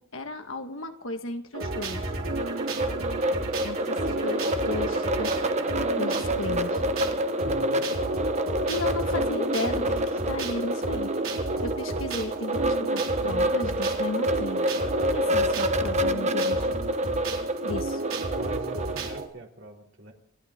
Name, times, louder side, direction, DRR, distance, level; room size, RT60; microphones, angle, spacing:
voice 1, 0.1-2.1 3.6-5.4 6.0-6.8 8.7-14.6 14.9-16.7 17.6-18.0, left 2 dB, 70° left, 6 dB, 1.7 m, -35 dB
sound 1, 1.5-19.3, right 2 dB, 80° right, 3.9 m, -32 dB
sound 2, 2.4-19.1, right 1 dB, 35° right, 1.0 m, -28 dB
voice 2, 7.4-7.9 18.4-20.1, right 1 dB, 60° right, 1 dB, 3.1 m, -44 dB
28.0 x 12.0 x 3.8 m, 0.73 s
head